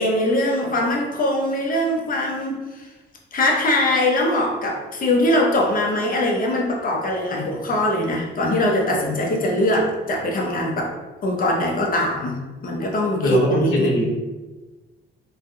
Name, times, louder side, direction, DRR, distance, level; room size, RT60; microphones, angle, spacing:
voice 1, 0.0-2.9 3.3-10.9 11.2-13.9, left 1 dB, 45° left, 0 dB, 0.7 m, -22 dB
voice 2, 13.2-14.1, left 1 dB, 75° left, -4 dB, 1.0 m, -20 dB
3.2 x 2.6 x 2.2 m, 1.2 s
cardioid pair, 90°, 20 cm